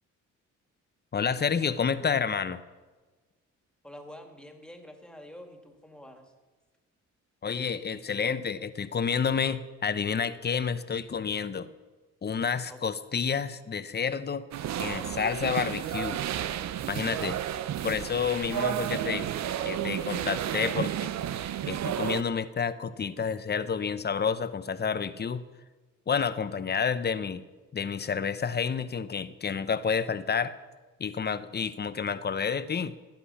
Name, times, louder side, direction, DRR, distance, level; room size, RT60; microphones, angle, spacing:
voice 1, 1.1-2.6 7.4-11.7 12.2-14.5 14.8-16.2 16.9-17.4 17.8-19.3 19.6-21.1 21.7-25.4 26.1-27.4 27.7-30.6 31.0-32.9, left 6 dB, 35° left, 13 dB, 0.9 m, -29 dB
voice 2, 3.8-6.3 12.7-12.8, left 1 dB, 5° left, 4 dB, 2.4 m, -47 dB
sound 1, 14.5-22.2, right 11 dB, 65° right, 0.8 m, -32 dB
17.5 x 10.5 x 5.8 m, 1.3 s
cardioid pair, 90°, 30 cm